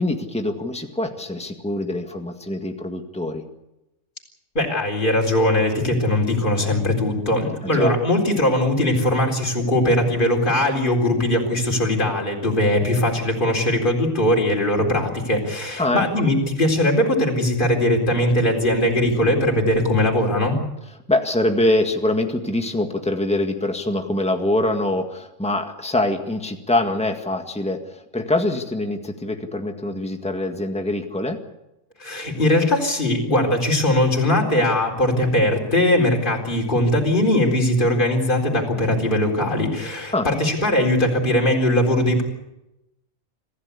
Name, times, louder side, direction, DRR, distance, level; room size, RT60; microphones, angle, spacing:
voice 1, 0.0-3.4 7.6-7.9 15.8-16.0 21.1-31.4 40.1-40.3, left 1 dB, 5° left, 5 dB, 1.9 m, -24 dB
voice 2, 4.5-20.6 32.0-42.2, left 1 dB, 40° left, 0 dB, 4.2 m, -20 dB
26.5 x 15.5 x 8.5 m, 0.90 s
omnidirectional pair, 1.3 m